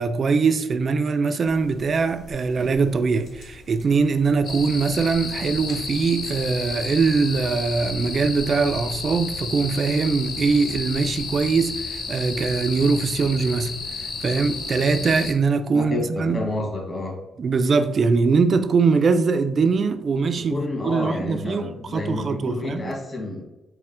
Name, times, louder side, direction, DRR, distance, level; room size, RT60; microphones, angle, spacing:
voice 1, 0.0-16.4 17.4-20.6 20.8-22.9, right 4 dB, 45° right, 0.3 m, -22 dB
sound 1, 1.5-11.5, left 2 dB, 80° left, 1.0 m, -46 dB
sound 2, 4.4-15.3, left 4 dB, 55° left, 0.6 m, -32 dB
voice 2, 15.7-17.2 20.5-23.5, left 2 dB, 30° left, 1.4 m, -29 dB
4.3 x 2.1 x 3.7 m
cardioid pair, 90°, 0 cm